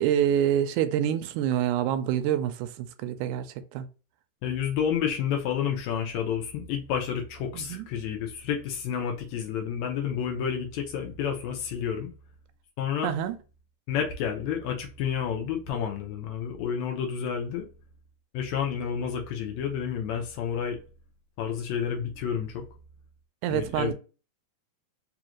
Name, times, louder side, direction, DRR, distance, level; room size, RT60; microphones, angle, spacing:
voice 1, 0.0-3.5 3.7-3.9 7.5-7.9 13.0-13.4 23.4-23.9, right 10 dB, 80° right, 2.0 m, -26 dB
voice 2, 4.4-12.1 12.8-13.1 13.9-17.7 18.3-20.8 21.4-22.6 23.5-23.9, left 8 dB, 75° left, 1.8 m, -30 dB
4.9 x 2.5 x 3.0 m
omnidirectional pair, 3.7 m